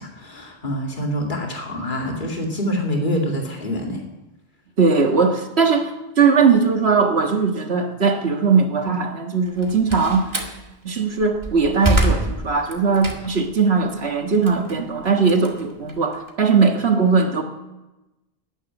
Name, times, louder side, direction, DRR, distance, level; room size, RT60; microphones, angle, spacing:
voice 1, 0.0-4.0, equal, 50° left, 1 dB, 2.5 m, -26 dB
voice 2, 4.8-10.3 10.8-17.4, right 5 dB, 90° right, 4 dB, 1.9 m, -19 dB
Slam, 9.5-10.6 11.1-13.5 13.9-16.3, right 1 dB, 25° right, 1.9 m, -25 dB
13.5 x 10.5 x 9.6 m, 1.0 s
omnidirectional pair, 1.0 m